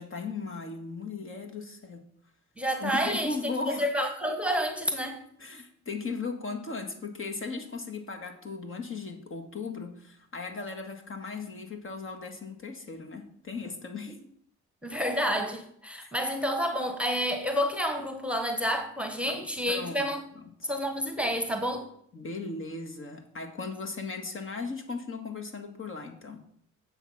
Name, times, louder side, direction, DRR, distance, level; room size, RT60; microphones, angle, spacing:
voice 1, 0.0-2.0 2.8-3.9 5.4-14.2 16.0-16.1 19.7-20.7 22.1-26.4, left 4 dB, 45° left, 1.9 m, -37 dB
voice 2, 2.6-5.2 14.1-14.2 14.8-20.2 20.6-21.9, equal, 5° right, 1.4 m, -29 dB
9.0 x 7.3 x 5.8 m
cardioid pair, 90°, 30 cm